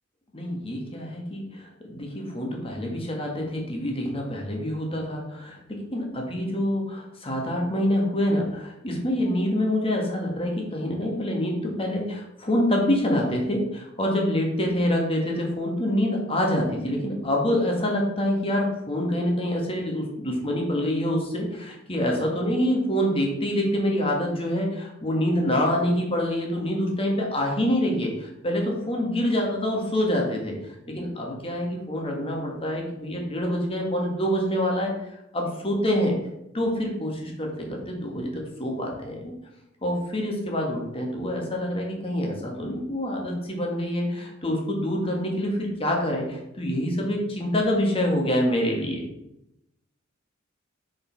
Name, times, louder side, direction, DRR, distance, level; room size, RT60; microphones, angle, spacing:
voice 1, 0.3-36.2 36.5-39.3 39.8-49.1, equal, 30° left, 0 dB, 1.8 m, -26 dB
6.7 x 5.1 x 4.7 m, 0.83 s
head